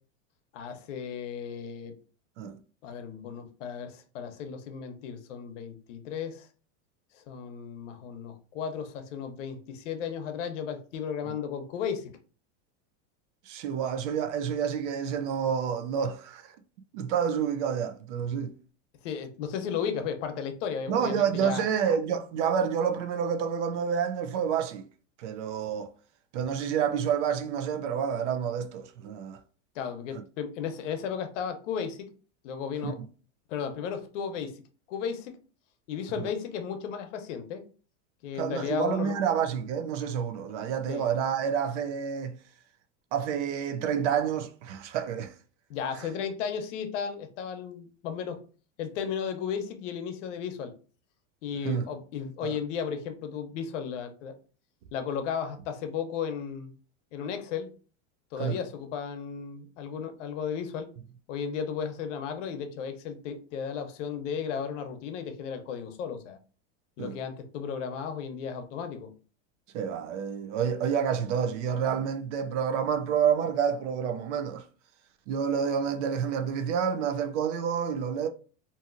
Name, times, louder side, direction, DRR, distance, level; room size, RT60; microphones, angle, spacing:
voice 1, 0.5-1.9 2.8-6.5 7.2-12.1 19.0-21.6 29.7-32.1 32.4-33.0 33.5-34.6 34.9-35.4 35.9-37.6 38.2-39.1 40.9-41.1 45.7-48.4 48.8-50.7 51.4-54.3 54.9-56.7 57.1-57.7 58.3-60.9 61.3-66.4 67.0-69.1, left 7 dB, 75° left, 0.7 m, -34 dB
voice 2, 13.5-16.6 16.9-18.5 20.9-24.9 25.2-25.9 26.3-29.4 32.8-32.9 36.2-36.3 38.3-42.4 43.1-45.3 46.0-46.1 51.6-51.9 52.4-52.6 58.4-58.6 67.0-67.2 69.7-74.7 75.3-78.3, right 7 dB, 70° right, 0.6 m, -29 dB
2.8 x 2.6 x 2.4 m
supercardioid pair, 155°, 37 cm